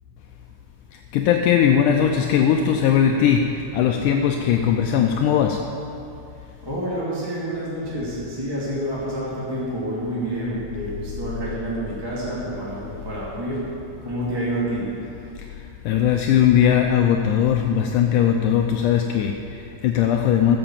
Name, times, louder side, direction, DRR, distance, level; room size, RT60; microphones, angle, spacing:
voice 1, 1.1-5.6 15.9-20.6, left 9 dB, 80° left, 3 dB, 2.1 m, -19 dB
voice 2, 6.3-13.6 14.0-15.0, right 1 dB, 10° right, -8 dB, 2.1 m, -28 dB
14.0 x 7.0 x 7.5 m, 2.6 s
omnidirectional pair, 3.7 m